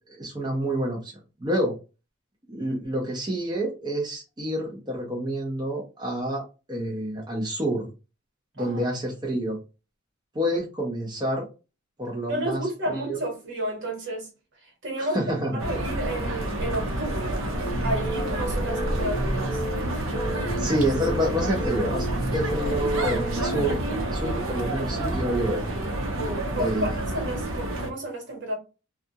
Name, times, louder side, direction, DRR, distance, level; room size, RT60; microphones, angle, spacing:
voice 1, 0.1-1.1 1.4-1.7 2.5-6.4 6.7-7.9 8.6-9.6 10.3-11.5 12.0-13.2 15.0-15.6 20.5-22.1 22.3-25.6 26.5-26.9, right 1 dB, 20° right, 0.7 m, -28 dB
voice 2, 8.6-8.9 12.3-14.3 14.6-17.4 17.8-19.6 22.6-22.8 26.1-28.6, right 1 dB, 60° right, 1.4 m, -32 dB
sound 1, 15.6-27.9, right 1 dB, 90° right, 0.7 m, -29 dB
sound 2, 17.6-23.7, right 1 dB, 30° left, 0.7 m, -33 dB
2.5 x 2.3 x 2.7 m
head